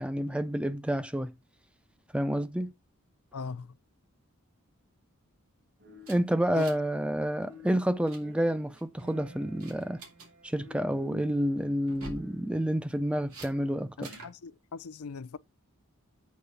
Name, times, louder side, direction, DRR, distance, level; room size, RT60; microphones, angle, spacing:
voice 1, 0.0-1.3 2.1-2.7 6.1-10.0 10.4-14.1, equal, 5° right, 0.4 m, -29 dB
voice 2, 3.3-3.7 6.6-6.7 14.2-15.4, left 5 dB, 85° left, 0.5 m, -39 dB
sound 1, 5.8-7.1 7.4-12.7, left 2 dB, 50° right, 2.2 m, -51 dB
sound 2, 6.0-7.0 7.2-7.4 7.8-8.2 8.8-9.1 9.6-10.3 11.8-12.3 13.3-13.5 14.0-14.4, right 2 dB, 80° right, 2.7 m, -46 dB
8.4 x 3.7 x 6.8 m
head